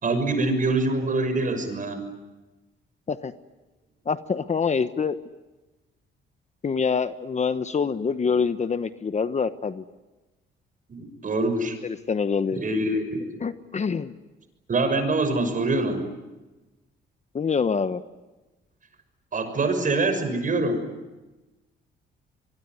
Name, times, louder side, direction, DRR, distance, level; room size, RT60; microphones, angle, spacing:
voice 1, 0.0-2.1 10.9-11.8 12.5-13.2 14.7-16.1 19.3-20.9, right 2 dB, 40° right, 8 dB, 6.4 m, -24 dB
voice 2, 4.1-5.2 6.6-9.8 11.8-12.6 13.4-14.1 17.3-18.0, left 5 dB, 35° left, 12 dB, 1.1 m, -25 dB
25.5 x 22.5 x 9.5 m, 1.1 s
cardioid pair, 90°, 20 cm